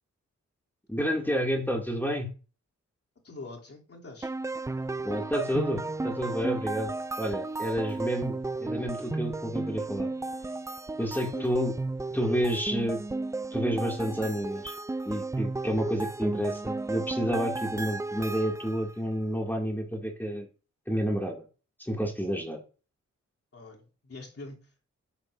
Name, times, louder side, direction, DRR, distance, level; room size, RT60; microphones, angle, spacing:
voice 1, 0.9-2.3 5.0-6.9 7.2-10.1 11.0-11.7 12.1-13.0 13.5-14.7 15.1-20.5 20.9-21.4 21.8-22.6, equal, 5° left, 1 dB, 2.2 m, -30 dB
voice 2, 3.2-4.3 11.1-11.5 23.5-24.9, left 2 dB, 50° left, -1 dB, 2.9 m, -45 dB
sound 1, 4.2-18.9, right 2 dB, 10° right, 0.3 m, -34 dB
9.3 x 7.3 x 2.5 m, 0.35 s
cardioid pair, 45°, 30 cm